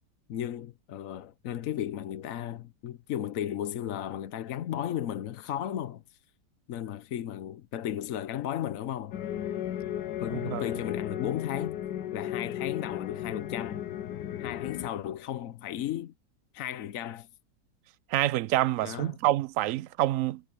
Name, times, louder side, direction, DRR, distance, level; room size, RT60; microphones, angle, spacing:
voice 1, 0.3-6.0 6.7-9.2 10.2-11.8 12.1-13.9 14.4-16.1 16.5-17.3 18.8-19.2, left 11 dB, 60° left, 1.0 m, -35 dB
sound 1, 9.1-14.9, left 11 dB, 75° left, 1.3 m, -35 dB
voice 2, 10.3-10.7 18.1-20.4, right 15 dB, 70° right, 0.8 m, -27 dB
omnidirectional pair, 1.9 m